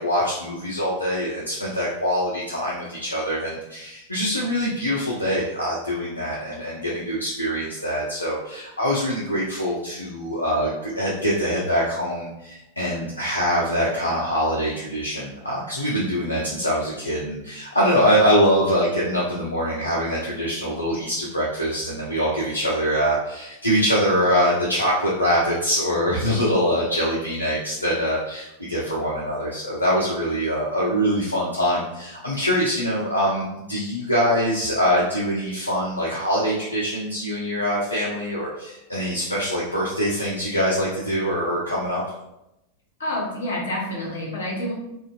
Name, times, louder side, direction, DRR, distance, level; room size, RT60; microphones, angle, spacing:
voice 1, 0.0-42.0, equal, 80° left, -6 dB, 0.4 m, -24 dB
voice 2, 43.0-44.7, left 1 dB, 65° left, -3 dB, 0.8 m, -28 dB
2.5 x 2.1 x 2.4 m, 0.87 s
figure-of-eight pair, 90°, 0 cm